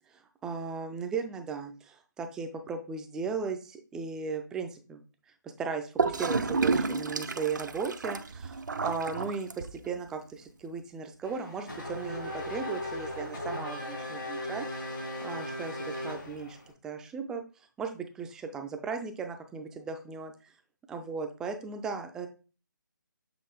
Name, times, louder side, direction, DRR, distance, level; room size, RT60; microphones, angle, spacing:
voice 1, 0.4-5.0 5.6-14.7 15.2-16.6 16.8-17.4 17.8-20.3 20.9-22.3, right 5 dB, 5° right, 6 dB, 0.4 m, -36 dB
Gurgling / Toilet flush, 6.0-10.0, right 4 dB, 60° right, 0.7 m, -30 dB
Race car auto racing / Accelerating revving vroom, 11.2-16.7, left 1 dB, 80° left, 3.2 m, -37 dB
7.5 x 3.8 x 3.8 m, 0.35 s
figure-of-eight pair, 145°, 11 cm